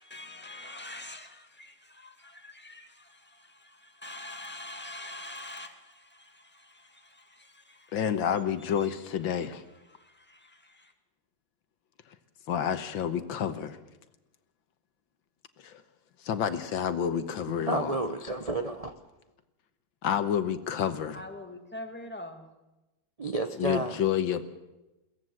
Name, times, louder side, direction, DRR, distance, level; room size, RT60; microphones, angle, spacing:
voice 1, 0.0-8.1 8.6-8.9 9.2-10.9 21.1-22.5, left 1 dB, 5° left, 1.9 m, -45 dB
voice 2, 7.9-9.6 12.5-13.8 15.6-15.8 16.2-18.0 20.0-21.2 23.6-24.4, left 8 dB, 75° left, 1.8 m, -29 dB
voice 3, 17.7-18.9 23.2-24.0, right 2 dB, 35° right, 0.6 m, -31 dB
22.0 x 17.0 x 7.8 m
omnidirectional pair, 2.2 m